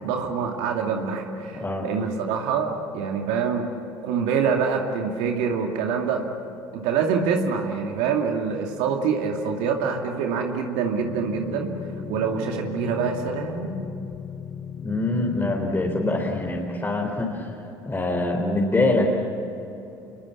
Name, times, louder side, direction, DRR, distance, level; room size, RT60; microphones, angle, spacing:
voice 1, 0.0-3.7 4.0-6.3 6.7-11.7 12.1-13.8, right 6 dB, 65° right, 2 dB, 2.5 m, -25 dB
voice 2, 1.5-1.9 14.8-17.6 17.9-19.1, left 2 dB, 20° left, -1 dB, 4.1 m, -24 dB
sound 1, 11.0-16.5, left 8 dB, 55° left, 1.5 m, -37 dB
29.0 x 22.0 x 7.4 m, 3.0 s
hypercardioid pair, 60°, 12 cm